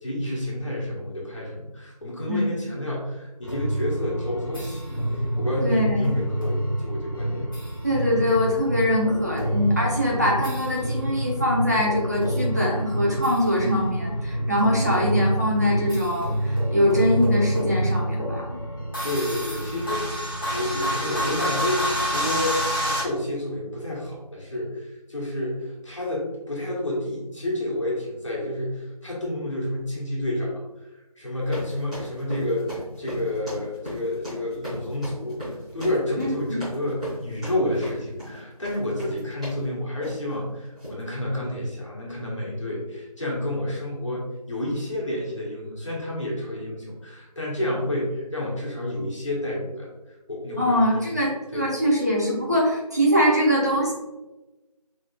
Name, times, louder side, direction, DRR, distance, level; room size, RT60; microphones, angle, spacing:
voice 1, 0.0-7.5 19.0-30.6 31.2-35.4 35.7-51.1 51.5-51.8, left 1 dB, 50° left, -5 dB, 1.5 m, -30 dB
sound 1, 3.4-23.0, equal, 35° left, 1.2 m, -27 dB
voice 2, 5.6-6.1 7.8-18.6 36.2-36.6 50.6-53.9, equal, 25° right, -4 dB, 0.9 m, -23 dB
sound 2, 31.4-39.7 40.0-40.3 40.8-41.0, equal, 10° right, 1.5 m, -37 dB
5.2 x 3.5 x 2.4 m, 1.1 s
figure-of-eight pair, 175°, 20 cm